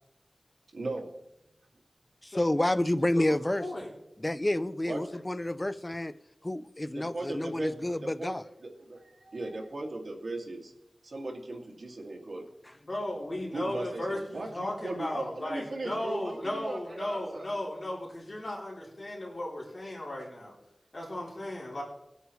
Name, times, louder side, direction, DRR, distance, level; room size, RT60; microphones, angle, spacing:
voice 1, 0.7-1.1 4.8-5.0 6.9-8.3 8.6-10.7 11.0-12.5 13.5-17.5, right 2 dB, 85° right, 2.2 m, -38 dB
voice 2, 2.2-3.7 4.2-6.1 6.4-8.4, left 1 dB, 25° left, 0.5 m, -29 dB
voice 3, 3.1-3.9 12.8-20.5 20.9-21.8, left 1 dB, 55° left, 3.4 m, -36 dB
21.0 x 8.2 x 3.2 m
wide cardioid pair, 75°, 0 cm